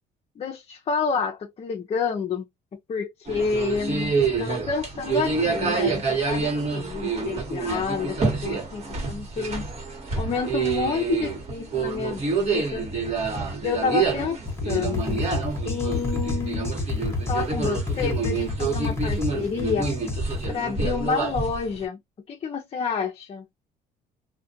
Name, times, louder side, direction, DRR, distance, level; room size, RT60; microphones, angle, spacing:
voice 1, 0.4-2.5 2.7-4.1 4.4-9.6 10.1-12.9 13.6-15.2 15.6-16.8 17.2-19.9 20.5-22.0 22.3-23.4, left 5 dB, 35° left, 0.6 m, -29 dB
sound 1, 3.3-21.8, right 4 dB, 40° right, 1.3 m, -27 dB
sound 2, 14.5-20.6, left 2 dB, 15° left, 1.0 m, -29 dB
2.4 x 2.2 x 2.7 m
cardioid pair, 110°, 17 cm